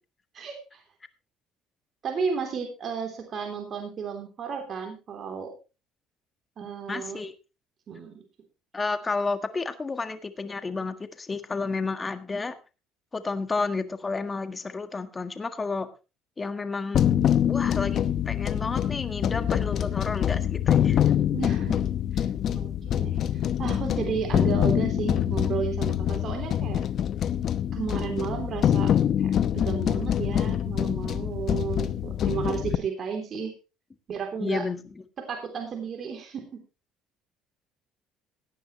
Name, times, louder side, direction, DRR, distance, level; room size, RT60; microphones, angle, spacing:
voice 1, 0.3-0.8 2.0-5.5 6.6-7.2 7.9-8.2 21.3-21.8 22.1-26.8 27.7-28.9 29.2-33.5 34.1-34.7 35.2-36.6, right 6 dB, 45° right, 3 dB, 3.3 m, -33 dB
voice 2, 6.9-7.3 8.7-12.6 13.1-15.9 16.4-17.0 17.5-21.1 31.1-31.2 34.4-34.8, left 4 dB, 25° left, 10 dB, 1.6 m, -31 dB
sound 1, 16.9-32.8, left 10 dB, 55° left, 0.8 m, -25 dB
17.5 x 9.9 x 3.2 m, 0.29 s
supercardioid pair, 90°, 0 cm